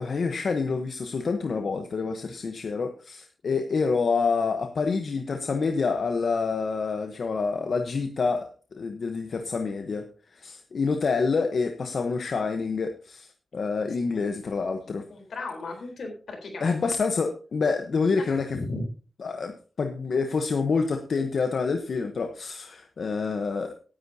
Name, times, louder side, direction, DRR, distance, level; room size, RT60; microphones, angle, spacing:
voice 1, 0.0-8.5 8.8-15.0 16.6-18.6 19.2-23.7, left 4 dB, 65° left, 6 dB, 1.1 m, -27 dB
voice 2, 15.1-16.8 18.2-18.8, left 3 dB, 85° left, 3 dB, 4.0 m, -36 dB
17.5 x 10.0 x 2.8 m, 0.38 s
wide cardioid pair, 140°, 0 cm